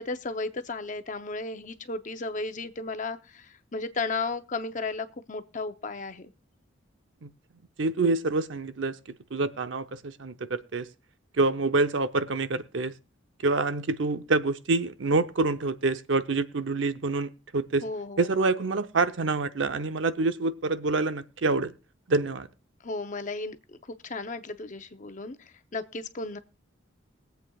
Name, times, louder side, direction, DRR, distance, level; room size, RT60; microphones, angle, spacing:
voice 1, 0.0-6.3 17.8-18.3 22.8-23.8 24.0-26.4, left 3 dB, 40° left, 0.7 m, -34 dB
voice 2, 7.8-9.0 9.3-10.9 11.4-12.9 13.4-17.8 18.2-21.7 22.1-22.5, right 3 dB, 75° right, 0.7 m, -26 dB
22.0 x 8.0 x 2.3 m
head